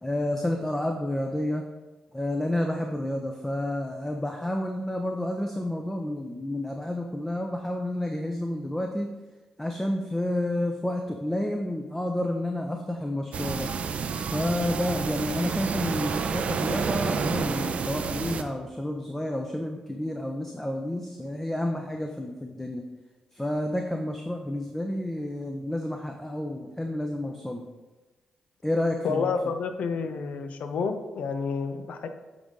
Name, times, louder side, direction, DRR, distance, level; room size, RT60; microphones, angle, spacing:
voice 1, 0.0-1.6 2.1-9.1 9.6-13.7 14.2-22.8 23.3-27.6 28.6-29.3, left 1 dB, 10° left, 3 dB, 0.7 m, -30 dB
sound 1, 13.3-18.4, right 5 dB, 60° right, 0.5 m, -29 dB
voice 2, 29.0-32.1, left 5 dB, 65° left, 8 dB, 0.6 m, -29 dB
7.7 x 3.6 x 3.8 m, 1.2 s
hypercardioid pair, 40°, 3 cm